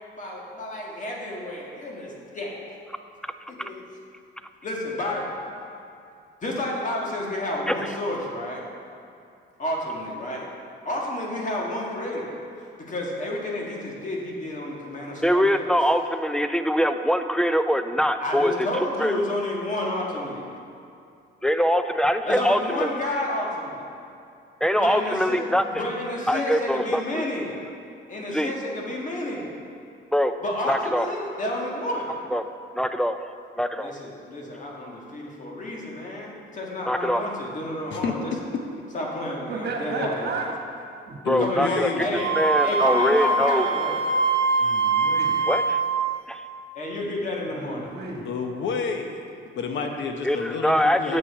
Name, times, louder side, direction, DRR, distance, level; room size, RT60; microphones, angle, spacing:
voice 1, 0.2-2.8 3.5-3.9 4.6-5.4 6.4-8.7 9.6-10.5 10.9-12.4 12.8-15.7 18.2-20.5 22.2-23.9 24.8-25.4 25.7-27.6 28.1-29.5 30.4-32.2 33.8-38.3 38.9-40.3 41.4-42.3 42.6-44.1 46.8-47.9, left 1 dB, 40° left, -2 dB, 1.6 m, -30 dB
voice 2, 15.2-18.7 19.0-19.2 21.4-22.9 24.6-25.8 26.3-27.2 28.3-28.5 30.1-30.4 30.7-31.1 32.3-32.4 32.8-33.2 33.6-33.9 36.9-37.2 41.3-41.9 42.4-43.7 45.5-45.8 46.3-46.4 50.3-51.2, equal, 5° left, 9 dB, 0.3 m, -23 dB
voice 3, 39.5-40.5 41.0-41.2 44.6-45.4 47.5-48.2, right 4 dB, 55° right, 0 dB, 1.5 m, -33 dB
voice 4, 41.2-42.1 47.0-47.1 48.2-49.2 49.6-51.2, left 5 dB, 70° left, 4 dB, 0.9 m, -29 dB
Wind instrument woodwind instrument, 42.1-45.9, right 3 dB, 30° right, 1.5 m, -23 dB
7.6 x 6.2 x 4.7 m, 2.6 s
cardioid pair, 90°, 20 cm